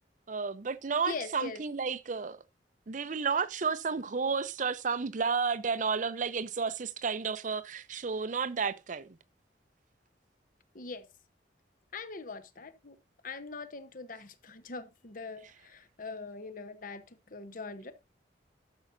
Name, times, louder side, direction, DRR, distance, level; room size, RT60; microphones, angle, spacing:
voice 1, 0.3-2.4 2.9-9.2, right 5 dB, 45° right, 0.6 m, -32 dB
voice 2, 1.1-1.6 10.7-11.1 11.9-13.0 13.2-17.9, left 4 dB, 50° left, 0.9 m, -42 dB
12.5 x 6.9 x 2.6 m
head